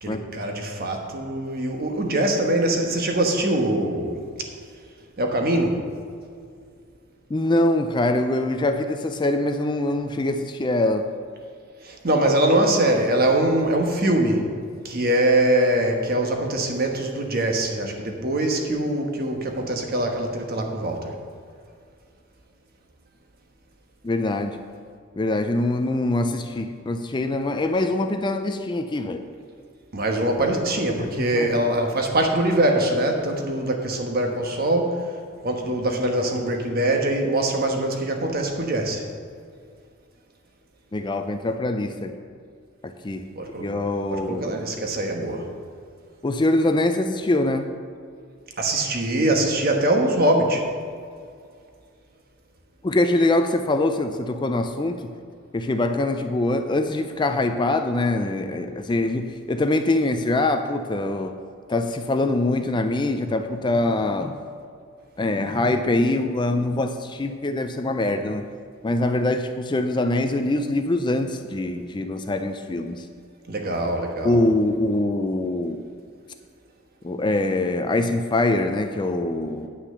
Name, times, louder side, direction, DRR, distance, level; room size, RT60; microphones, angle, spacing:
voice 1, 0.0-4.2 5.2-5.8 11.8-14.5 14.8-21.1 29.9-35.0 35.4-39.0 43.3-43.7 44.1-45.5 48.6-50.6 73.5-74.4, right 1 dB, 45° right, 3 dB, 1.3 m, -23 dB
voice 2, 7.3-11.1 24.0-24.6 25.2-29.2 31.0-31.5 40.9-42.1 42.8-43.3 43.6-44.5 46.2-47.7 52.8-55.0 55.5-61.3 61.7-64.4 65.2-68.5 68.8-73.1 74.2-75.8 77.0-79.7, left 2 dB, 20° left, 7 dB, 0.4 m, -23 dB
9.7 x 5.9 x 6.7 m, 2.3 s
head